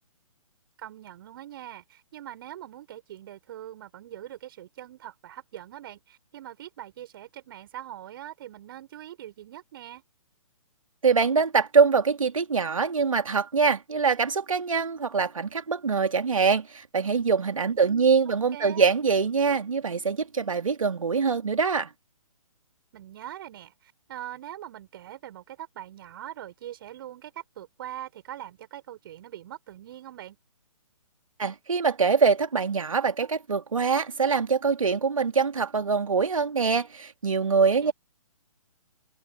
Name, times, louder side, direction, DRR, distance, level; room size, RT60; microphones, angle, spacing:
voice 1, 0.8-10.0 17.7-18.9 22.9-30.4 37.8-37.9, right 12 dB, 40° right, 6.6 m, -42 dB
voice 2, 11.0-21.9 31.4-37.9, right 5 dB, 65° right, 2.5 m, -24 dB
figure-of-eight pair, 130°, 18 cm